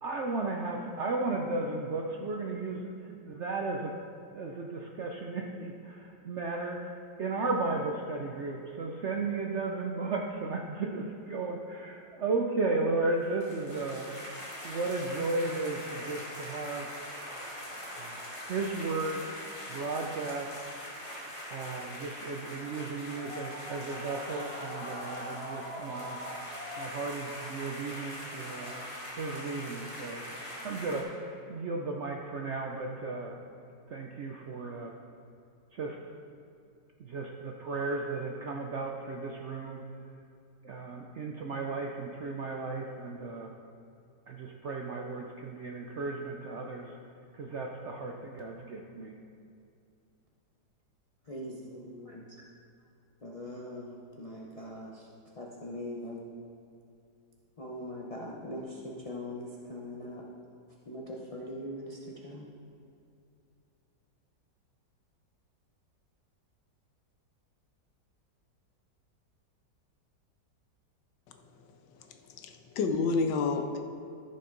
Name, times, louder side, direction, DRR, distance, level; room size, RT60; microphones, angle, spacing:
voice 1, 0.0-3.9 4.3-14.4 14.6-16.9 17.9-19.2 19.7-20.6 21.5-26.2 26.8-28.8 29.1-30.2 30.6-33.3 33.9-34.9 35.7-36.0 37.0-39.8 40.6-43.5 44.3-47.0 47.3-49.1, right 3 dB, 70° right, 1 dB, 0.6 m, -35 dB
sound 1, 13.1-31.0, equal, 20° left, 1.6 m, -42 dB
voice 2, 51.3-52.3 53.2-55.1 55.3-56.3 57.6-60.3 60.8-62.5, left 1 dB, 55° left, -4 dB, 0.4 m, -41 dB
voice 3, 72.3-73.8, left 4 dB, 80° left, 6 dB, 1.4 m, -29 dB
14.0 x 5.6 x 3.9 m, 2.5 s
omnidirectional pair, 1.9 m